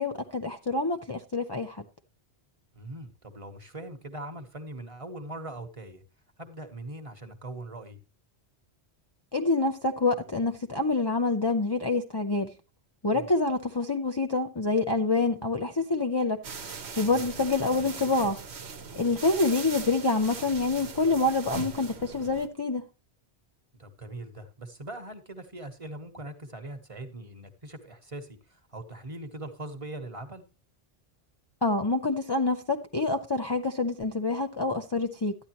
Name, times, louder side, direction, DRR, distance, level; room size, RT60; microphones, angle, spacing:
voice 1, 0.0-1.8 9.3-12.5 13.0-16.4 17.0-18.4 18.9-22.8 31.6-35.4, left 3 dB, 30° left, 0.5 m, -27 dB
voice 2, 2.7-6.0 6.4-8.0 13.1-13.3 17.2-17.3 23.8-30.4, right 1 dB, 30° right, 1.1 m, -41 dB
sound 1, 16.4-22.5, right 5 dB, 80° right, 1.3 m, -40 dB
12.5 x 9.6 x 2.9 m
omnidirectional pair, 1.1 m